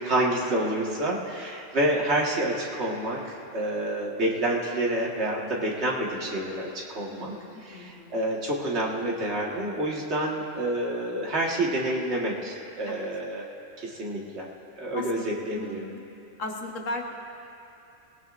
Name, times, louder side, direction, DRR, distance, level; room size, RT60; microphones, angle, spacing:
voice 1, 0.0-3.2 3.5-7.3 7.7-13.5 13.8-14.5 14.7-15.9, right 1 dB, 60° right, -3 dB, 2.0 m, -28 dB
voice 2, 7.1-8.2 12.9-13.0 14.9-16.0 16.4-17.2, left 2 dB, 80° left, 1 dB, 1.6 m, -37 dB
21.5 x 17.5 x 2.6 m, 2.7 s
omnidirectional pair, 1.3 m